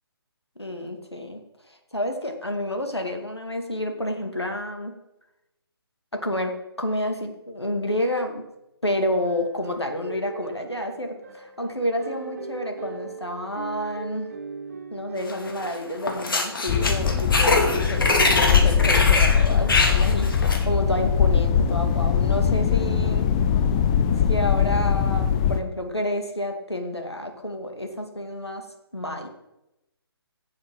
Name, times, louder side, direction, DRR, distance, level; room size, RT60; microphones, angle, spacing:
voice 1, 0.6-1.4 1.7-4.9 6.1-8.4 8.8-14.3 14.9-23.3 24.2-28.7 28.9-29.3, left 1 dB, 90° left, 4 dB, 2.2 m, -29 dB
sound 1, 9.1-16.1 16.7-17.0, right 5 dB, 40° right, 1.4 m, -40 dB
sound 2, 15.3-15.7 16.0-20.6, left 2 dB, 55° left, 2.4 m, -23 dB
sound 3, 16.7-25.6, left 7 dB, 15° left, 0.5 m, -21 dB
15.5 x 7.9 x 3.9 m, 0.91 s
figure-of-eight pair, 145°, 13 cm